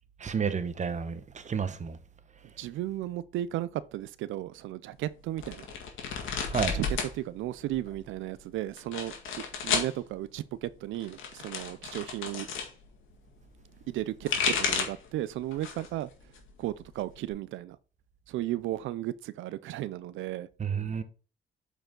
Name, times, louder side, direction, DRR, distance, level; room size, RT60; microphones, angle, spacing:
voice 1, 0.2-2.0 6.5-6.8 20.6-21.0, right 6 dB, 35° right, 1.0 m, -31 dB
voice 2, 2.6-5.7 6.7-9.1 9.6-12.5 13.9-16.1 16.6-17.8 18.3-20.5, right 14 dB, 80° right, 0.4 m, -34 dB
sound 1, 5.4-7.1 7.4-8.1 8.8-9.9 10.9-12.7 14.0-15.1 15.5-16.0 16.3-17.3, left 6 dB, 80° left, 1.9 m, -32 dB
7.8 x 4.9 x 3.7 m
cardioid pair, 90°, 20 cm